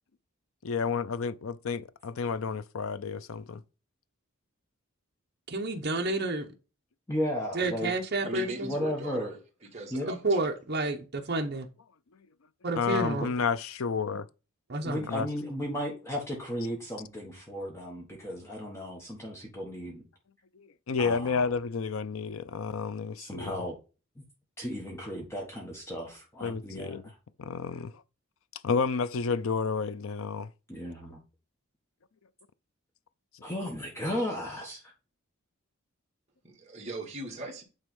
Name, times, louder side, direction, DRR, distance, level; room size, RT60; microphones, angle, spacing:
voice 1, 0.6-3.6 12.8-14.3 15.1-15.3 20.5-23.6 26.4-27.0 27.4-28.0 28.6-30.5 33.3-33.4, left 5 dB, 70° left, 0.5 m, -31 dB
voice 2, 5.5-6.5 7.5-8.7 10.1-11.7 12.6-13.3 14.7-15.1, right 2 dB, 45° right, 0.9 m, -30 dB
voice 3, 7.1-7.9 8.6-9.3 9.9-10.1 13.1-13.3 14.8-20.0 21.0-21.5 23.2-23.7 24.6-27.1 30.7-31.2 33.4-34.8, equal, 10° left, 1.5 m, -35 dB
voice 4, 8.2-10.5 36.4-37.6, right 1 dB, 30° right, 2.2 m, -40 dB
9.0 x 3.6 x 5.3 m
head